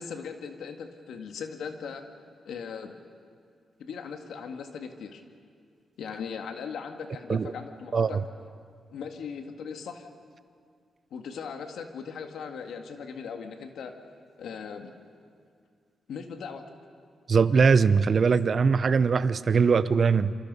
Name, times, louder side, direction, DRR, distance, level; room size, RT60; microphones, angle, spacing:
voice 1, 0.0-2.0 2.5-3.0 3.8-5.2 6.0-8.2 8.9-10.1 11.1-13.9 14.4-15.0 16.1-16.6, left 6 dB, 85° left, 5 dB, 1.9 m, -38 dB
voice 2, 17.3-20.3, right 5 dB, 55° right, 14 dB, 0.8 m, -21 dB
27.0 x 25.5 x 5.5 m, 2.2 s
cardioid pair, 65°, 0 cm